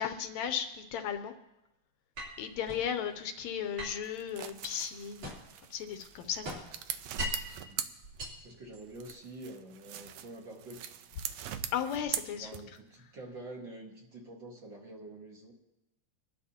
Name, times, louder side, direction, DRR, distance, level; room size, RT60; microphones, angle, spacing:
voice 1, 0.0-1.3 2.4-5.4 5.7-6.6 11.7-12.6, left 8 dB, 75° left, 7 dB, 2.0 m, -35 dB
sound 1, 2.2-2.9 3.8-5.6 6.0-7.6 8.0-9.1, equal, 60° right, 4.5 m, -41 dB
sound 2, 4.0-8.6 9.0-12.9, right 10 dB, 75° right, 1.7 m, -41 dB
voice 2, 8.4-10.9 12.3-15.5, right 2 dB, 45° right, -1 dB, 2.3 m, -47 dB
24.5 x 12.0 x 2.9 m, 0.92 s
omnidirectional pair, 3.4 m